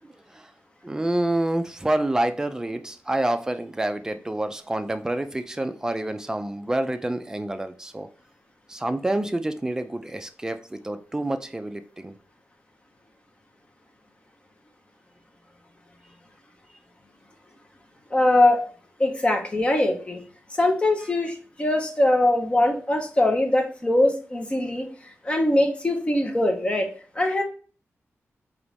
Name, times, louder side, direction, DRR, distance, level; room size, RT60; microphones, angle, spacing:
voice 1, 0.8-8.1 8.7-12.2, right 1 dB, 10° right, 0.3 m, -27 dB
voice 2, 18.1-18.6 19.0-20.2 20.6-24.9 25.2-26.9 27.2-27.4, left 1 dB, 20° left, 0.7 m, -22 dB
3.8 x 3.0 x 3.4 m
wide cardioid pair, 165°, 5 cm